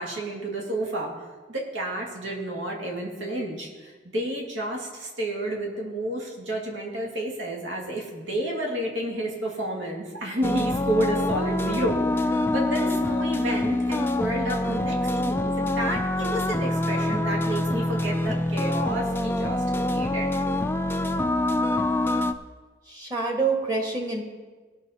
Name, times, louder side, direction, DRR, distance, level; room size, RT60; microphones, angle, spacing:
voice 1, 0.0-20.3, right 1 dB, 75° right, -1 dB, 1.9 m, -30 dB
sound 1, 10.4-22.3, left 1 dB, 10° left, 0.3 m, -25 dB
voice 2, 22.9-24.2, right 4 dB, 20° right, 1 dB, 1.5 m, -26 dB
18.0 x 6.4 x 4.1 m, 1.4 s
head